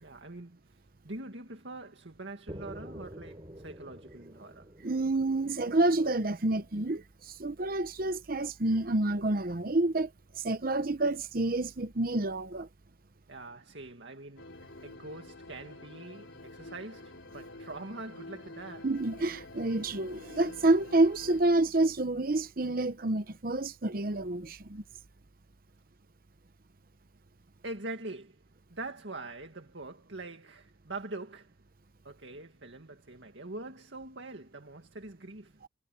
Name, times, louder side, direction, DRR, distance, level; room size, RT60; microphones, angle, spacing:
voice 1, 0.0-4.7 13.3-14.5 14.8-18.9 27.6-28.4 28.7-31.6 32.0-35.6, right 2 dB, 70° right, 2.1 m, -44 dB
sound 1, 2.5-6.4, equal, 25° right, 4.6 m, -47 dB
voice 2, 4.8-10.1 10.4-12.7 18.8-24.8, right 2 dB, 50° right, 0.9 m, -28 dB
sound 2, 14.4-21.4, left 2 dB, 90° left, 3.5 m, -48 dB
head